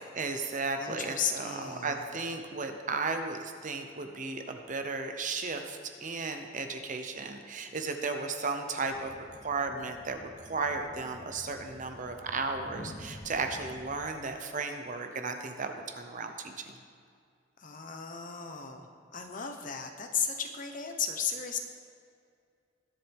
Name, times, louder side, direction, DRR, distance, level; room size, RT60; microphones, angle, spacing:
voice 1, 0.0-9.1 9.4-16.8, right 4 dB, 40° right, 5 dB, 0.9 m, -35 dB
voice 2, 0.8-2.0 17.6-21.6, left 7 dB, 40° left, 5 dB, 1.0 m, -35 dB
sound 1, 8.8-14.0, left 1 dB, 75° left, 2.3 m, -49 dB
21.0 x 7.6 x 3.6 m, 2.2 s
head